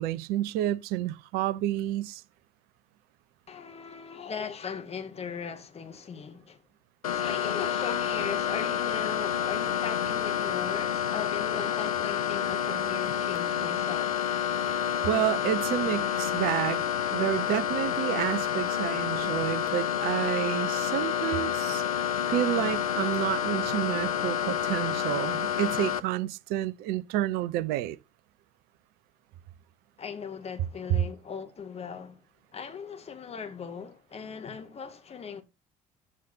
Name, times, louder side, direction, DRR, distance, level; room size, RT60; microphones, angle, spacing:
voice 1, 0.0-2.2 15.0-16.8 17.1-21.8 22.3-28.0, right 13 dB, 60° right, 0.8 m, -29 dB
voice 2, 3.5-6.6 7.1-14.1 30.0-32.2 32.5-35.4, left 6 dB, 35° left, 2.3 m, -38 dB
sound 1, 7.0-26.0, left 9 dB, 80° left, 0.8 m, -29 dB
14.0 x 10.0 x 2.8 m
figure-of-eight pair, 55°, 18 cm